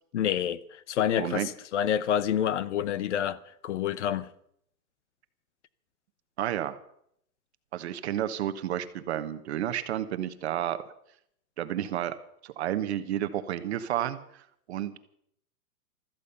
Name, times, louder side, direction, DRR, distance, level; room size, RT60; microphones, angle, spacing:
voice 1, 0.1-0.6 0.9-3.4 3.6-4.3, left 9 dB, 50° left, 0.9 m, -27 dB
voice 2, 1.2-1.5 6.4-6.8 7.7-10.8 11.6-12.2 12.4-15.0, right 11 dB, 45° right, 1.1 m, -31 dB
15.5 x 14.0 x 5.6 m
hypercardioid pair, 165°, 47 cm